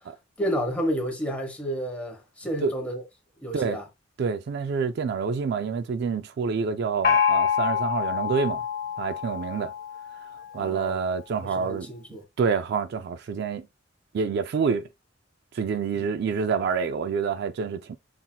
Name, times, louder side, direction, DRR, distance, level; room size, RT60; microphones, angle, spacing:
voice 1, 0.4-3.0 3.4-3.8 10.6-11.0 11.4-12.2, equal, 5° left, 1.1 m, -31 dB
voice 2, 4.2-8.6 9.0-9.7 10.5-11.9 12.4-13.7 14.1-14.9 15.5-18.0, right 5 dB, 55° right, 0.3 m, -27 dB
Gong, 7.0-10.6, left 7 dB, 45° left, 0.7 m, -26 dB
5.7 x 2.7 x 2.2 m
head